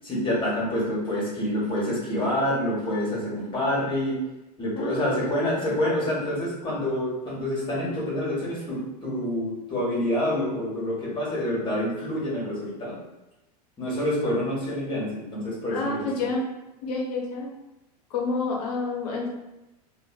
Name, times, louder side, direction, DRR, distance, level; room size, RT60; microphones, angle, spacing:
voice 1, 0.0-4.2 4.6-13.0 13.8-16.1, left 1 dB, 25° left, -6 dB, 1.3 m, -27 dB
voice 2, 4.8-5.1 15.7-16.4 16.8-17.5 18.1-19.3, left 3 dB, 65° left, -1 dB, 0.8 m, -29 dB
3.0 x 2.4 x 2.3 m, 0.99 s
hypercardioid pair, 100°, 21 cm